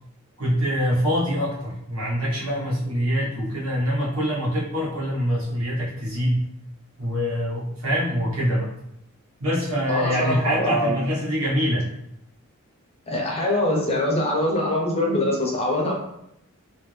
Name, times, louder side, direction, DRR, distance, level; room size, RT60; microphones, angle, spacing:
voice 1, 0.4-6.4 7.0-8.7 9.4-11.8, equal, 70° right, -6 dB, 1.4 m, -24 dB
voice 2, 9.9-11.0 13.1-15.9, left 1 dB, 30° left, -1 dB, 0.7 m, -23 dB
3.5 x 2.5 x 3.2 m, 0.79 s
head